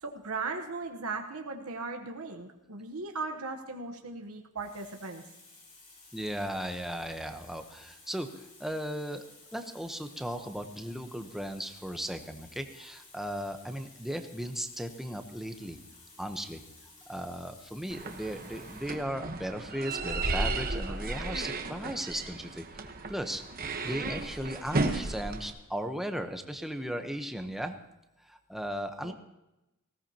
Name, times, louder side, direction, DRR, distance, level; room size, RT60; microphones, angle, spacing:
voice 1, 0.0-5.2 29.0-29.1, right 3 dB, 85° right, 4 dB, 1.1 m, -37 dB
Water tap faucet, 3.8-4.0 4.6-19.1 20.0-20.1, left 3 dB, 30° left, 2.9 m, -55 dB
voice 2, 6.1-9.2 9.5-15.8 16.2-16.6 17.1-23.4 23.8-27.8 28.3-29.1, equal, ahead, 6 dB, 0.9 m, -36 dB
sound 1, 17.9-25.5, right 2 dB, 40° right, 1.2 m, -34 dB
19.0 x 17.0 x 2.9 m, 0.93 s
head